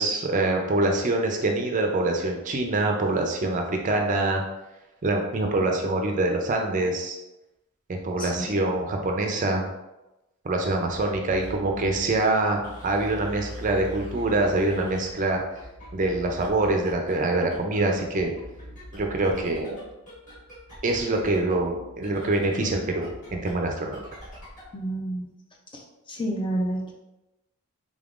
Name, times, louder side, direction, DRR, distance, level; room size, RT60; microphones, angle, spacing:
voice 1, 0.0-4.4 5.0-7.2 7.9-9.7 10.4-15.4 15.9-18.3 18.9-19.8 20.8-24.0, right 2 dB, 35° right, 2 dB, 0.4 m, -25 dB
voice 2, 8.2-8.5 24.7-25.3 25.7-26.9, right 1 dB, 20° left, 0 dB, 0.4 m, -30 dB
sound 1, 10.7-24.8, equal, 35° left, 1.5 m, -43 dB
3.7 x 3.5 x 2.4 m, 0.97 s
head